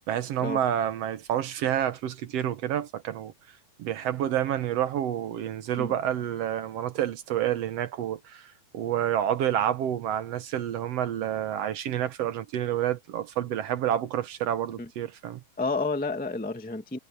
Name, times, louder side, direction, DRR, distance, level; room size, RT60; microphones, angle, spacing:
voice 1, 0.1-3.3 3.8-15.4, right 10 dB, 65° right, 1.7 m, -29 dB
voice 2, 15.6-17.0, left 3 dB, 10° left, 0.6 m, -30 dB
omnidirectional pair, 3.6 m